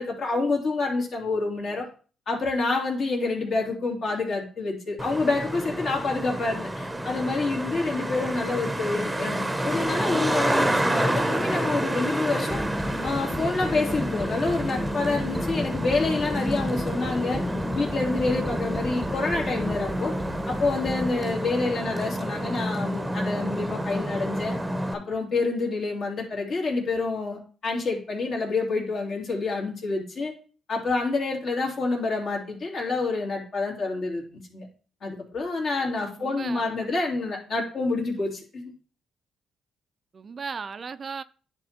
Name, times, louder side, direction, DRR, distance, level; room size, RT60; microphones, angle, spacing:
voice 1, 0.0-1.9 2.3-12.6 13.0-17.4 17.7-20.1 20.5-24.5 24.9-30.3 30.7-34.7 35.0-38.7, left 3 dB, 55° left, 2.8 m, -28 dB
Traffic noise roadway noise, 5.0-24.9, right 1 dB, 10° right, 0.8 m, -29 dB
voice 2, 7.9-8.2 36.2-36.7 40.1-41.2, right 5 dB, 40° right, 0.4 m, -36 dB
sound 1, 12.5-21.1, left 1 dB, 15° left, 1.2 m, -34 dB
10.5 x 3.6 x 4.4 m
cardioid pair, 90°, 0 cm